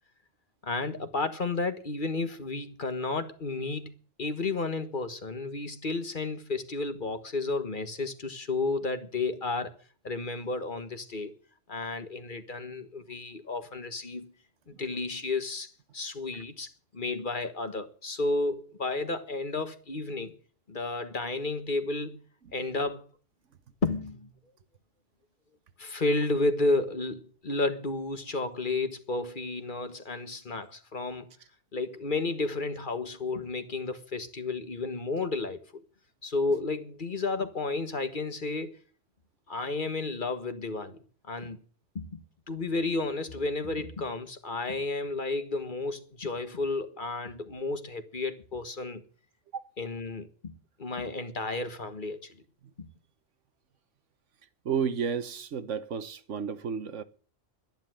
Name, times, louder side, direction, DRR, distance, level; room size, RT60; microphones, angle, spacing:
voice 1, 0.6-3.9 4.2-9.7 10.0-11.3 11.7-14.3 14.8-20.3 20.7-22.2 22.5-23.0 23.8-24.3 25.8-31.3 31.7-35.8 36.2-38.8 39.5-41.0 41.3-41.6 41.9-49.0 49.8-52.4 52.8-52.9, left 3 dB, 45° left, 1.5 m, -32 dB
voice 2, 54.6-57.0, right 7 dB, 80° right, 1.4 m, -32 dB
12.0 x 10.5 x 7.6 m
omnidirectional pair, 1.2 m